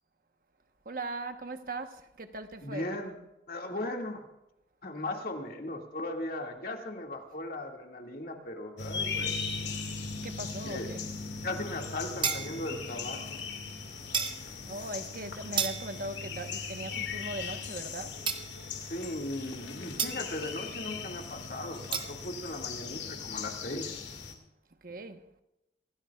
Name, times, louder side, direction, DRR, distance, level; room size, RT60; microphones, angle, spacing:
voice 1, 0.8-2.9 10.2-11.1 14.7-18.3 24.8-25.2, right 2 dB, 50° right, 1.2 m, -39 dB
voice 2, 2.6-3.1 3.5-4.3 4.8-9.4 10.7-10.9 11.4-13.4 18.9-24.0, left 1 dB, 55° left, 2.2 m, -37 dB
sound 1, 8.8-24.3, left 5 dB, 80° left, 2.2 m, -39 dB
sound 2, 12.2-12.8 14.1-14.4 15.6-16.1 18.3-18.7 20.0-20.3 21.9-22.1, right 6 dB, 25° right, 0.9 m, -32 dB
26.0 x 17.0 x 2.4 m
head